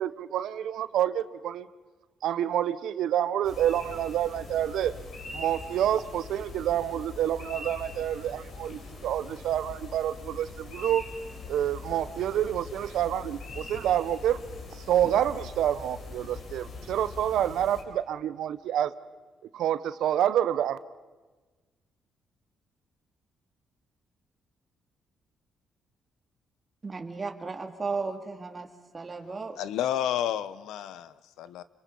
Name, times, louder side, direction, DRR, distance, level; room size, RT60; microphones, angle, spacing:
voice 1, 0.0-1.7 2.2-4.9 5.3-11.0 11.5-14.4 14.8-18.9 19.5-20.8, right 11 dB, 80° right, 0.9 m, -28 dB
sound 1, 3.4-17.8, left 3 dB, 60° left, 4.5 m, -42 dB
voice 2, 26.8-28.7 28.9-29.6, right 4 dB, 30° right, 2.4 m, -34 dB
voice 3, 29.6-31.6, left 11 dB, 85° left, 0.9 m, -31 dB
30.0 x 23.5 x 5.5 m
cardioid pair, 90°, 0 cm